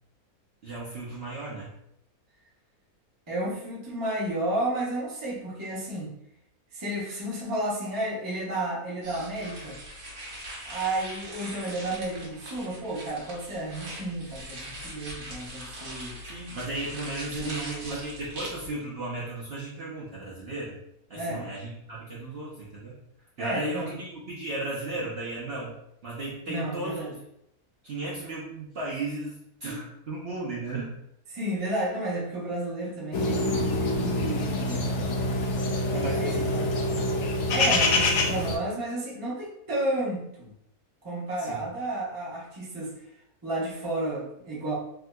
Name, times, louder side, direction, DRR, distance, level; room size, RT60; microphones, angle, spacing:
voice 1, 0.6-1.7 16.2-20.7 21.1-22.9 23.4-25.8 26.0-27.0 27.8-31.0 35.9-37.1 41.4-41.7, right 2 dB, 55° right, -6 dB, 0.7 m, -35 dB
voice 2, 3.3-6.1 6.7-9.8 10.6-16.2 17.3-18.0 21.1-21.5 23.4-23.9 26.5-27.1 31.3-34.9 36.2-36.5 37.5-40.5 41.0-42.9 43.4-44.7, right 1 dB, 20° right, -6 dB, 0.6 m, -32 dB
sound 1, 9.0-18.7, equal, 70° right, 1.5 m, -41 dB
sound 2, 33.1-38.6, left 2 dB, 70° left, 0.7 m, -26 dB
3.5 x 2.7 x 2.2 m, 0.77 s
omnidirectional pair, 1.6 m